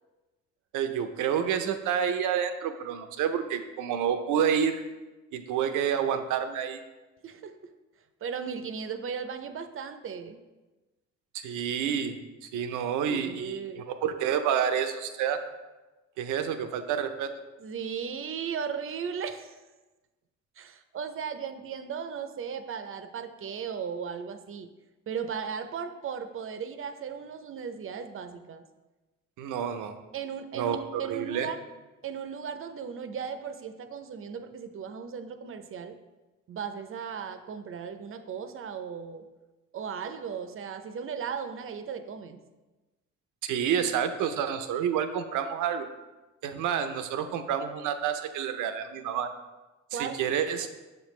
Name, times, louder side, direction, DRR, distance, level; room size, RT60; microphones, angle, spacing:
voice 1, 0.7-4.8 5.3-6.8 11.3-15.4 16.2-17.3 29.4-29.9 30.5-31.5 43.4-45.9 46.4-49.3 49.9-50.7, right 8 dB, 90° right, 8 dB, 0.6 m, -29 dB
voice 2, 7.2-7.7 8.2-10.4 13.1-13.8 17.6-19.5 20.6-24.7 25.1-28.6 30.1-31.6 32.0-36.0 36.5-39.3 39.7-42.4 49.9-50.2, right 7 dB, 45° right, 9 dB, 0.5 m, -36 dB
6.7 x 5.2 x 3.1 m, 1.1 s
cardioid pair, 90°, 30 cm